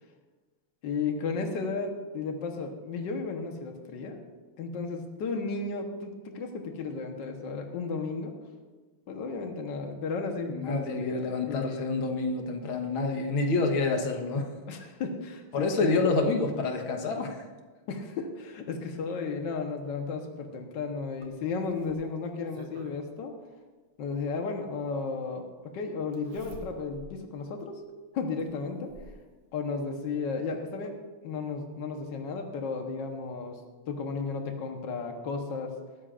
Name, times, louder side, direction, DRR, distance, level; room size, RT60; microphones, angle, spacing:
voice 1, 0.8-4.2 4.6-8.4 9.1-11.8 14.7-16.0 17.9-23.3 24.0-25.4 25.7-27.8 28.1-28.9 29.5-31.0 31.2-33.6 33.9-35.7, left 4 dB, 65° left, 3 dB, 1.8 m, -34 dB
voice 2, 10.5-14.5 15.5-17.4, left 3 dB, 90° left, 3 dB, 2.2 m, -28 dB
Zipper (clothing), 21.2-23.0 24.4-24.5 26.1-27.1 27.6-27.7 28.4-29.2 30.4-30.5 30.8-30.9, right 2 dB, 80° right, 2.3 m, -48 dB
20.0 x 13.5 x 2.5 m, 1.3 s
omnidirectional pair, 2.2 m